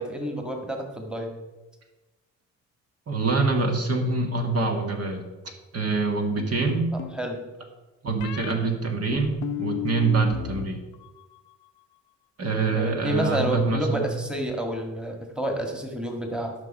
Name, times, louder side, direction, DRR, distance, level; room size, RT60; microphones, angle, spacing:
voice 1, 0.0-1.3 7.1-7.4 12.7-16.5, right 1 dB, 5° right, 3 dB, 1.8 m, -29 dB
voice 2, 3.1-5.2 5.7-6.9 8.0-10.8 12.4-14.0, right 3 dB, 55° right, 3 dB, 1.8 m, -25 dB
sound 1, 6.4-7.2 8.2-8.5 9.1-10.7 10.9-11.5, left 14 dB, 80° left, 0.7 m, -34 dB
12.5 x 5.7 x 5.4 m, 1.1 s
cardioid pair, 90°, 30 cm